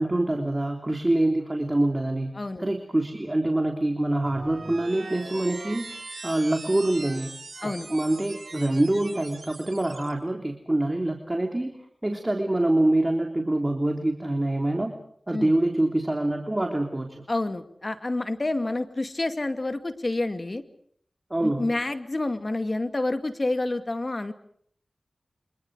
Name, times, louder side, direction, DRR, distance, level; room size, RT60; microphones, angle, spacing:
voice 1, 0.0-2.3 2.6-7.3 7.6-11.7 12.0-14.9 15.3-17.2 21.3-21.7, right 1 dB, 30° right, 3 dB, 3.4 m, -25 dB
voice 2, 2.3-2.7 7.6-7.9 15.3-15.5 17.3-20.6 21.4-24.3, left 2 dB, 45° left, 8 dB, 2.2 m, -28 dB
sound 1, 4.2-10.1, right 3 dB, 65° right, 5.0 m, -41 dB
29.5 x 26.0 x 5.0 m, 0.63 s
cardioid pair, 40°, 0 cm